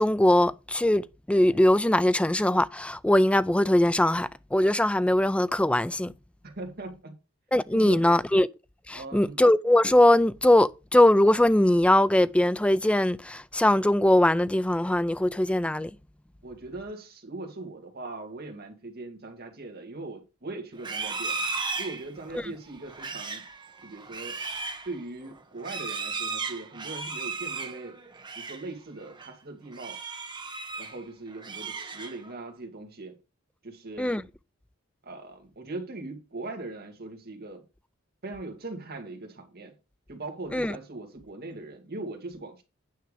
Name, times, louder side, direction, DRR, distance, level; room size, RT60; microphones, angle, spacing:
voice 1, 0.0-6.1 7.5-8.5 8.9-15.9 22.3-22.4 34.0-34.2 40.5-40.8, left 1 dB, 5° left, 0.4 m, -21 dB
voice 2, 6.4-7.2 7.7-8.2 8.9-9.4 16.4-21.4 21.8-23.5 23.8-24.4 24.9-28.0 28.4-30.0 30.8-33.2 33.6-34.3 35.0-37.7 38.2-39.7 40.1-42.6, right 2 dB, 50° right, 2.0 m, -40 dB
Livestock farm animals working animals, 20.7-28.7 29.0-29.3 29.7-31.0 31.3-32.4, right 4 dB, 20° right, 1.2 m, -36 dB
9.4 x 5.8 x 5.0 m
head